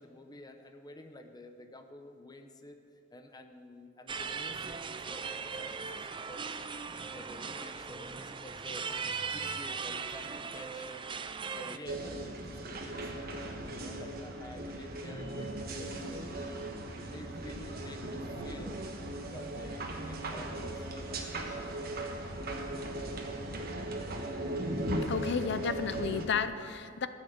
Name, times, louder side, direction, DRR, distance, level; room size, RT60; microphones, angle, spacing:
voice 1, 0.0-2.8 3.1-6.7 7.1-8.9 9.3-11.1 11.5-13.1 13.7-16.6 17.1-18.8 19.2-21.3 21.7-22.1, left 1 dB, 20° left, 6 dB, 0.8 m, -50 dB
sound 1, 4.1-11.8, right 5 dB, 25° right, 0.4 m, -38 dB
sound 2, 11.9-26.3, right 1 dB, 50° right, 1.3 m, -38 dB
voice 2, 25.1-27.1, left 6 dB, 60° left, 12 dB, 0.6 m, -32 dB
14.0 x 6.5 x 8.0 m, 2.6 s
head